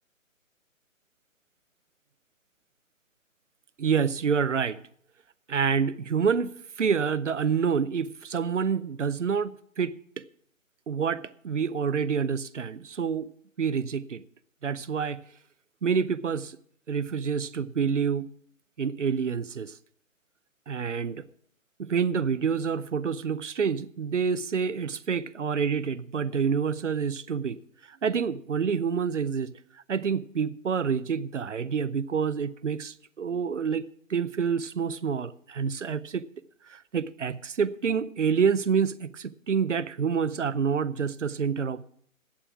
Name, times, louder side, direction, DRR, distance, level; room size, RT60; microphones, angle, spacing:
voice 1, 3.8-4.8 5.5-10.2 10.9-13.3 13.6-14.2 14.6-15.2 15.8-16.6 16.9-18.3 18.8-19.7 20.7-21.2 21.8-27.6 27.9-29.6 29.9-33.8 34.1-36.2 36.7-41.8, right 6 dB, 60° right, 0.7 m, -27 dB
11.5 x 8.9 x 6.0 m
figure-of-eight pair, 140°, 41 cm